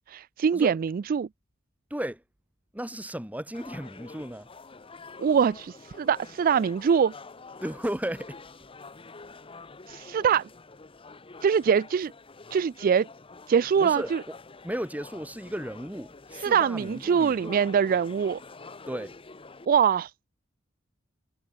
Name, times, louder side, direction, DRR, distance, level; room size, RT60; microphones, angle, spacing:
voice 1, 0.1-1.3 5.2-7.1 9.9-10.5 11.4-12.1 12.5-13.1 13.5-14.2 16.4-18.4 19.7-20.1, right 7 dB, 45° right, 0.3 m, -23 dB
voice 2, 1.9-2.2 2.7-4.5 7.6-8.4 13.8-14.3 14.6-17.6 18.9-19.1, equal, 10° right, 2.7 m, -34 dB
sound 1, 3.5-19.7, left 3 dB, 25° left, 1.0 m, -47 dB
head